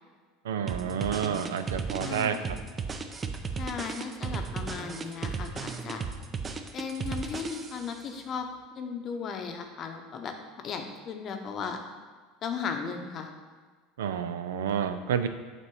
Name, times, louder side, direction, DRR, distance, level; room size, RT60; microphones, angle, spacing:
voice 1, 0.4-2.4 14.0-15.3, right 8 dB, 85° right, 9 dB, 0.4 m, -29 dB
sound 1, 0.7-8.0, right 5 dB, 25° right, 0.5 m, -35 dB
voice 2, 2.0-2.6 3.6-6.0 6.7-8.5 8.8-10.3 10.6-11.8 12.4-13.3, left 6 dB, 45° left, 5 dB, 0.8 m, -36 dB
7.5 x 3.0 x 4.7 m, 1.5 s
hypercardioid pair, 95°, 0 cm